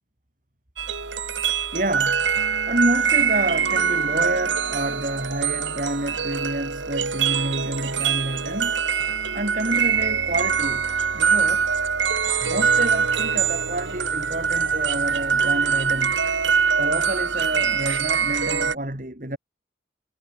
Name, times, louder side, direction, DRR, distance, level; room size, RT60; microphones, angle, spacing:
sound 1, 0.8-18.7, right 6 dB, 90° right, 2.8 m, -23 dB
voice 1, 1.7-2.2 2.7-8.9 9.3-10.9 11.1-11.7 12.5-16.2 16.8-19.4, right 1 dB, 45° right, 3.3 m, -28 dB
head